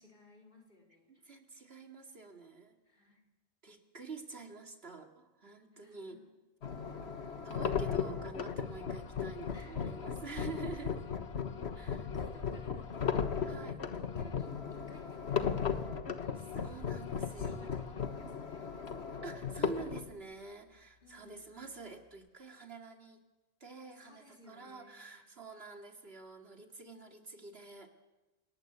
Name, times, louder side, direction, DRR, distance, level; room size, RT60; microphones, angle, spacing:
voice 1, 0.0-1.2 2.8-3.3 5.8-6.3 7.1-7.4 9.5-10.0 10.7-10.9 11.5-13.3 13.7-19.2 19.8-19.9 21.0-21.4 24.0-25.3, left 3 dB, 55° left, 2 dB, 4.8 m, -58 dB
voice 2, 1.1-2.8 3.6-6.2 7.4-11.0 11.7-12.1 12.5-12.6 13.4-13.8 16.6-18.0 19.2-23.2 23.6-27.9, right 4 dB, 70° right, 4 dB, 2.7 m, -47 dB
sound 1, 6.6-20.1, left 6 dB, 80° left, 1.6 m, -36 dB
28.0 x 18.5 x 8.2 m, 1.1 s
omnidirectional pair, 1.1 m